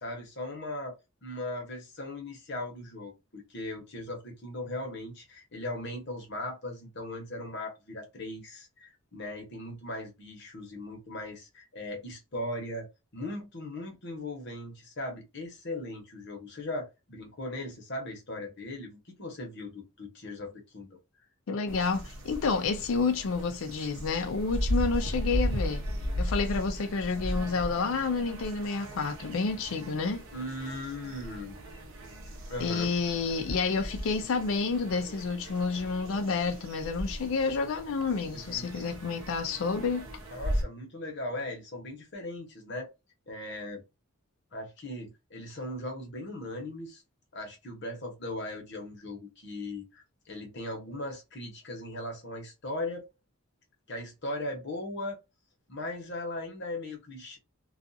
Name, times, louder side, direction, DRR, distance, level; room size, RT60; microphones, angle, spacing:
voice 1, 0.0-0.9 1.2-12.9 13.1-21.0 30.3-31.6 32.5-32.9 38.3-38.9 40.3-42.9 43.3-43.8 44.5-47.0 47.3-53.0 53.9-55.2 55.7-57.4, left 1 dB, 55° left, 1.0 m, -38 dB
voice 2, 21.5-25.8 26.2-30.2 32.6-40.1, left 4 dB, 70° left, 0.4 m, -29 dB
sound 1, 21.7-40.6, equal, 65° right, 0.8 m, -36 dB
2.4 x 2.4 x 2.6 m
head